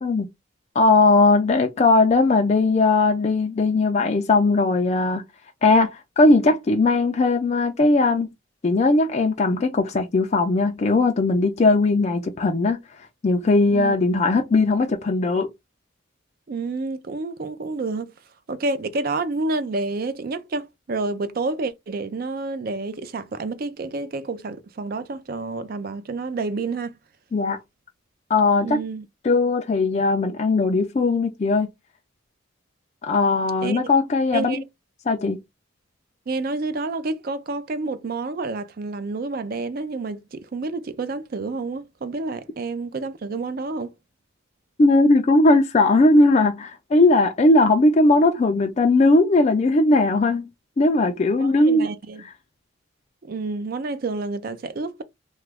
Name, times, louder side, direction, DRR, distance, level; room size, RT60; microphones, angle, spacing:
voice 1, 0.8-5.2 5.6-8.3 8.6-12.8 13.2-15.5 27.3-27.6 28.3-28.8 29.2-31.7 33.0-34.6 35.1-35.4 44.8-50.5 50.8-51.9, left 2 dB, 30° left, 0.3 m, -18 dB
voice 2, 16.5-18.1 18.5-27.0 28.6-29.1 33.6-33.9 34.3-34.6 36.3-43.9 51.4-52.2 53.2-55.0, right 3 dB, 45° right, 0.4 m, -29 dB
2.9 x 2.4 x 3.3 m
head